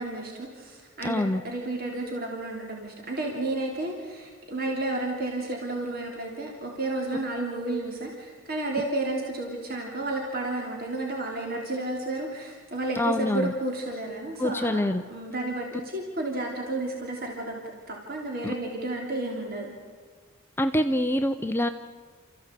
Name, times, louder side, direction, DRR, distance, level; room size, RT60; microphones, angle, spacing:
voice 1, 0.0-14.8 15.1-19.8, right 2 dB, 45° right, 0 dB, 3.3 m, -32 dB
voice 2, 1.0-1.4 12.9-13.5 14.4-15.0 20.6-21.7, left 1 dB, 10° left, 7 dB, 0.6 m, -25 dB
28.5 x 15.0 x 8.2 m, 1.5 s
head